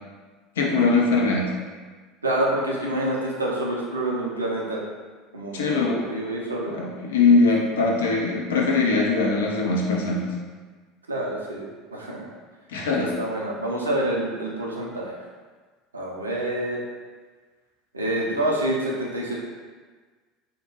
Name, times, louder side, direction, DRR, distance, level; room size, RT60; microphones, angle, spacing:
voice 1, 0.6-1.5 5.5-6.0 6.7-10.2 12.7-13.1, left 3 dB, 65° left, -2 dB, 0.4 m, -21 dB
voice 2, 2.2-4.8 5.3-6.9 11.1-12.2 12.9-15.2 15.9-16.8 17.9-19.4, right 1 dB, 80° right, -3 dB, 0.4 m, -27 dB
2.1 x 2.1 x 3.1 m, 1.4 s
figure-of-eight pair, 70°, 0 cm